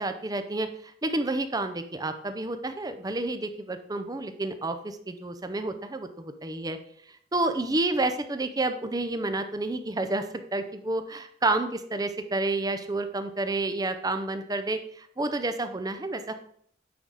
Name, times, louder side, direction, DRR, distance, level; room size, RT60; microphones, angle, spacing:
voice 1, 0.0-6.8 7.3-10.3 10.5-16.3, right 2 dB, 20° right, 9 dB, 0.6 m, -30 dB
9.3 x 4.0 x 4.8 m, 0.64 s
head